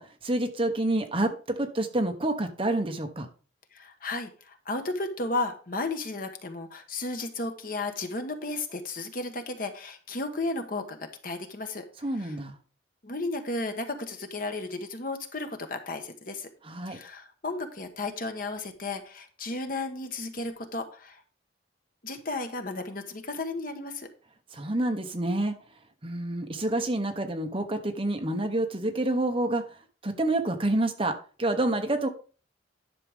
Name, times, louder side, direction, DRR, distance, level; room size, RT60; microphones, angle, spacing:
voice 1, 0.0-3.3 12.0-12.6 16.6-17.0 24.5-25.5 26.0-29.8 30.0-32.1, right 1 dB, 30° right, 6 dB, 1.1 m, -28 dB
voice 2, 3.7-11.8 12.2-12.4 13.0-16.5 16.9-21.2 22.0-24.1, left 2 dB, 50° left, 7 dB, 1.2 m, -34 dB
10.5 x 6.4 x 3.6 m, 0.39 s
head